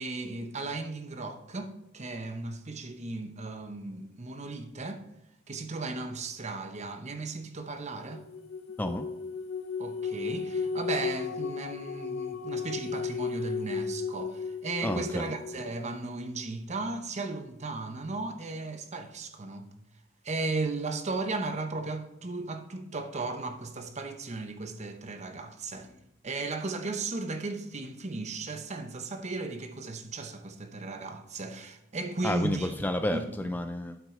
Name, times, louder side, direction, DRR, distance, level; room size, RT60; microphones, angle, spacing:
voice 1, 0.0-5.0 5.5-8.3 9.8-19.7 20.2-32.7 33.1-33.3, right 3 dB, 35° right, 0.8 m, -36 dB
sound 1, 8.1-15.9, left 5 dB, 90° left, 0.6 m, -35 dB
voice 2, 14.8-15.2 32.2-34.0, left 1 dB, 10° left, 0.3 m, -30 dB
9.0 x 7.4 x 3.7 m
head